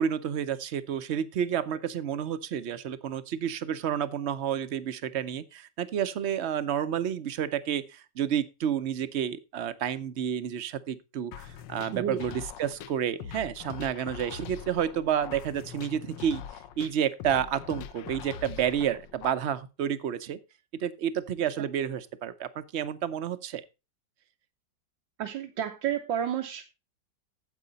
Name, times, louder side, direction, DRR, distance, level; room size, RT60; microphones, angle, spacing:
voice 1, 0.0-16.4 16.8-20.4 20.8-23.6, right 9 dB, 60° right, 0.7 m, -30 dB
sound 1, 11.3-19.3, left 8 dB, 85° left, 1.4 m, -42 dB
voice 2, 25.2-26.6, right 10 dB, 90° right, 1.7 m, -30 dB
9.6 x 7.7 x 4.0 m
omnidirectional pair, 2.0 m